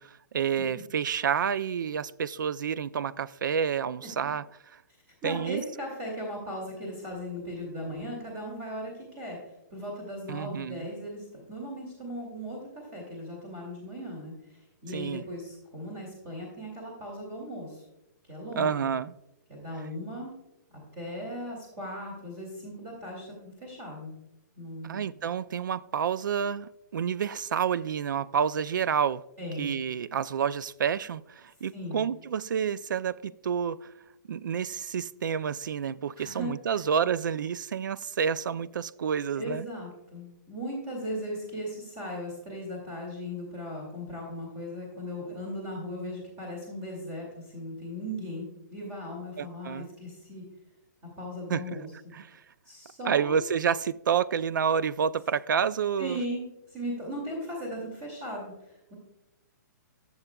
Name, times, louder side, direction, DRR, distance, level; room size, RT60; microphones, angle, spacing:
voice 1, 0.0-4.4 4.7-4.8 5.2-5.6 10.3-10.9 14.9-15.2 18.6-19.1 24.8-29.2 29.6-33.9 34.3-39.7 49.4-49.9 51.5-51.6 52.1-52.4 53.0-56.2, right 7 dB, 90° right, 0.4 m, -29 dB
voice 2, 5.1-17.8 18.3-18.9 19.5-20.3 20.9-24.1 24.6-25.1 29.4-29.7 31.7-32.0 36.2-36.8 39.4-50.4 51.2-51.9 52.7-53.5 56.0-58.9, equal, 30° right, 2.4 m, -38 dB
14.0 x 7.1 x 2.3 m
hypercardioid pair, 165°, 10 cm